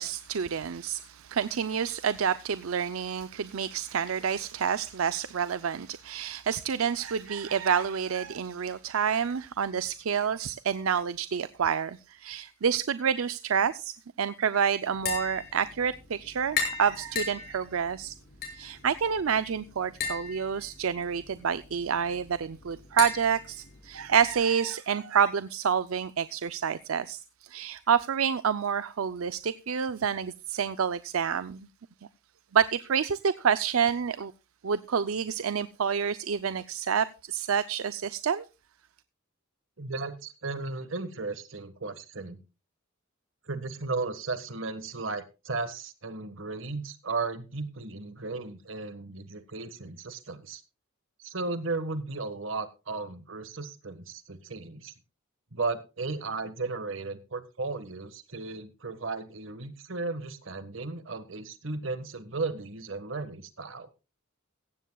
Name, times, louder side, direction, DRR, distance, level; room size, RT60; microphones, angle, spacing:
voice 1, 0.0-18.1 18.5-31.7 32.5-34.3 34.6-38.5, right 7 dB, 80° right, 0.5 m, -28 dB
Tap, 14.9-24.4, left 5 dB, 50° left, 6.4 m, -38 dB
voice 2, 39.8-42.4 43.5-50.6 51.2-54.9 55.5-63.9, right 3 dB, 65° right, 1.5 m, -35 dB
16.0 x 15.0 x 2.3 m
head